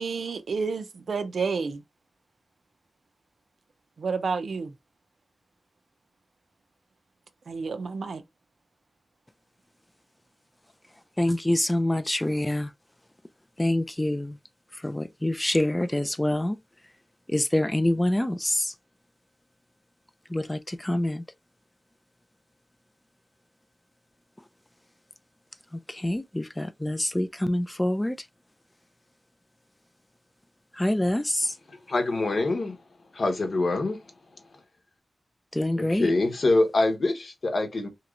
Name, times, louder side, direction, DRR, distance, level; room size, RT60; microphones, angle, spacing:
voice 1, 0.0-1.8 4.0-4.7 7.5-8.2, right 5 dB, 80° right, 0.5 m, -30 dB
voice 2, 11.2-12.7 13.6-14.4 14.7-16.6 17.3-18.7 20.3-21.2 25.7-28.3 30.7-31.6 35.5-36.1, left 1 dB, 15° left, 0.3 m, -26 dB
voice 3, 31.9-32.8 33.1-34.0 35.8-37.9, left 2 dB, 60° left, 0.9 m, -25 dB
3.1 x 2.9 x 2.4 m
wide cardioid pair, 95°, 0 cm